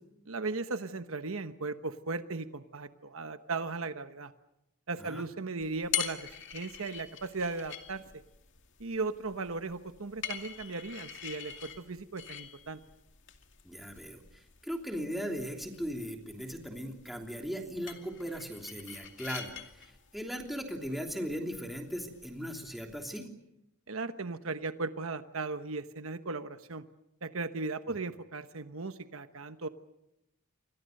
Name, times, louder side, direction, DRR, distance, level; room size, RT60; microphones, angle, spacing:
voice 1, 0.3-4.3 4.9-8.0 8.8-12.8 23.9-26.8 27.2-29.7, right 3 dB, 65° right, 10 dB, 1.1 m, -37 dB
sound 1, 5.6-23.1, left 10 dB, 60° left, 2.4 m, -44 dB
voice 2, 13.6-23.3, equal, ahead, 2 dB, 3.1 m, -38 dB
29.5 x 24.0 x 6.6 m, 0.84 s
head